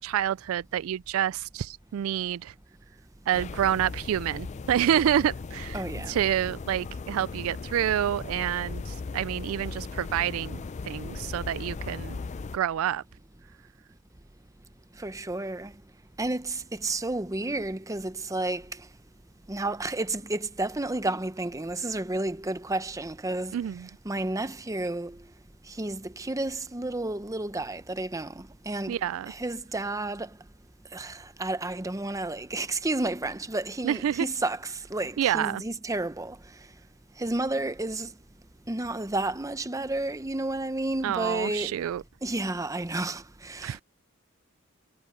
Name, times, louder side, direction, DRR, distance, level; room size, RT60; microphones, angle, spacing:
voice 1, 0.0-2.5 3.3-12.2 12.5-13.0 23.5-23.9 28.9-29.3 33.8-34.3 35.2-35.6 41.0-42.0 43.6-43.8, right 10 dB, 75° right, 0.3 m, -28 dB
sound 1, 3.3-12.6, left 4 dB, 35° left, 0.4 m, -37 dB
voice 2, 5.7-6.1 15.0-15.7 16.2-18.7 19.5-23.6 24.0-25.2 25.7-30.3 30.9-36.4 37.2-38.1 38.7-41.7 42.2-43.8, right 2 dB, 15° right, 0.8 m, -31 dB
head